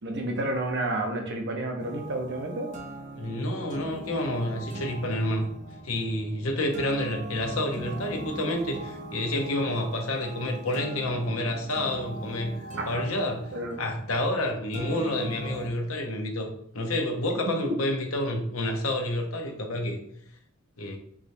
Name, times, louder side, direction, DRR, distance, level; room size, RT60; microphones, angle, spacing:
voice 1, 0.0-2.8 12.8-13.1 13.5-13.8 17.5-17.6, right 2 dB, 55° right, 2 dB, 0.8 m, -30 dB
sound 1, 1.8-15.7, right 1 dB, 35° right, 0.5 m, -41 dB
voice 2, 3.1-5.5 5.8-12.6 12.9-13.4 13.8-16.5 16.7-20.0 20.8-21.0, left 1 dB, 80° left, 3 dB, 0.9 m, -29 dB
4.7 x 3.2 x 2.7 m, 0.70 s
head